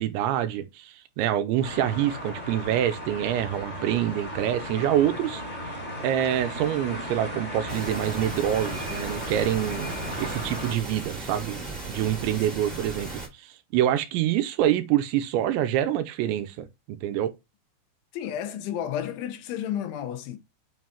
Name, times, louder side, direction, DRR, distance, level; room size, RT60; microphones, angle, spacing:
voice 1, 0.0-5.4 6.0-11.6 11.9-13.1 13.4-17.3, right 11 dB, 80° right, 2.9 m, -26 dB
sound 1, 1.6-10.7, left 1 dB, 10° left, 2.4 m, -36 dB
sound 2, 7.7-13.3, right 3 dB, 30° right, 1.0 m, -36 dB
voice 2, 18.1-20.4, left 10 dB, 80° left, 3.4 m, -32 dB
9.5 x 5.4 x 2.9 m
omnidirectional pair, 5.5 m